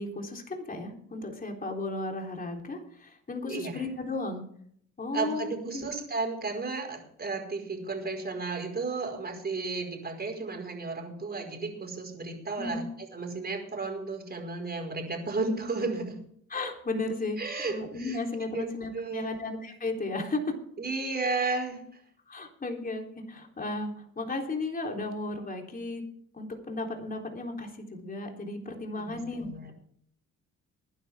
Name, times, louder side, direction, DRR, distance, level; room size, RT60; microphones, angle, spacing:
voice 1, 0.0-4.5 5.0-5.9 12.6-12.9 16.5-17.4 17.7-20.6 22.3-26.0 26.3-29.7, left 2 dB, 30° left, 2 dB, 3.7 m, -34 dB
voice 2, 3.5-3.8 5.1-16.2 17.4-18.2 18.5-18.7 18.9-19.3 20.8-21.8 29.0-29.7, right 3 dB, 30° right, 3 dB, 5.1 m, -33 dB
21.5 x 10.5 x 3.7 m, 0.64 s
cardioid pair, 90°, 30 cm